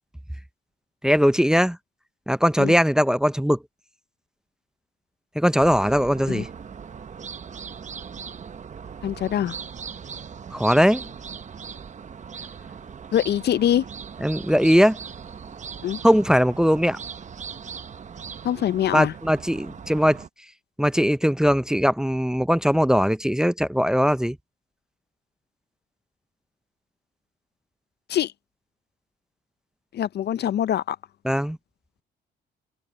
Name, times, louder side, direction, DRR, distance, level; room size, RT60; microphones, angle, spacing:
voice 1, 1.0-1.8 2.3-3.6 5.4-6.5 10.5-11.1 14.2-15.0 16.0-17.0 18.9-20.2 20.8-24.4 31.2-31.6, equal, 5° right, 0.6 m, -20 dB
sound 1, 5.6-20.3, right 6 dB, 35° right, 0.8 m, -39 dB
voice 2, 9.0-9.6 13.1-13.9 15.8-16.0 18.4-19.1 28.1-28.3 29.9-31.0, left 11 dB, 55° left, 0.5 m, -24 dB
cardioid pair, 90°, 20 cm